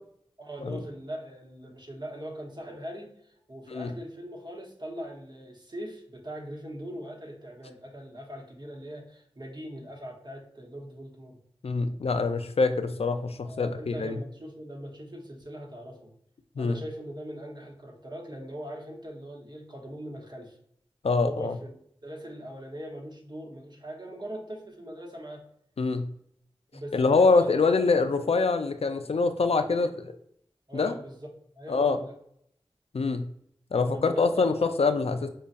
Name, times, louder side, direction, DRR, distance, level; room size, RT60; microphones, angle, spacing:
voice 1, 0.4-11.4 13.4-16.1 16.6-20.6 21.2-21.7 22.0-25.4 26.7-27.9 29.6-30.0 30.7-31.3 31.5-32.1 33.8-34.7, equal, 45° right, 0 dB, 1.0 m, -41 dB
voice 2, 11.6-14.2 16.6-16.8 21.0-21.5 25.8-26.1 26.9-29.9 30.7-31.0 31.7-32.0 32.9-33.3 33.7-35.3, left 4 dB, 75° left, 8 dB, 0.4 m, -24 dB
5.2 x 2.3 x 2.5 m, 0.69 s
wide cardioid pair, 60°, 10 cm